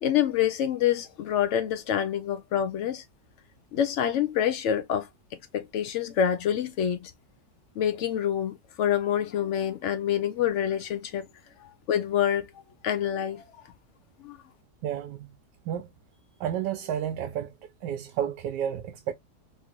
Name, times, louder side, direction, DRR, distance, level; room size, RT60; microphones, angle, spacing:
voice 1, 0.0-3.0 3.7-5.1 5.5-7.1 7.8-11.3 11.6-12.5 12.8-13.4 14.2-14.4, left 9 dB, 70° left, 0.7 m, -26 dB
voice 2, 14.8-15.3 15.7-15.9 16.4-17.5 17.8-19.1, right 9 dB, 85° right, 1.2 m, -31 dB
3.6 x 2.6 x 3.0 m
omnidirectional pair, 1.8 m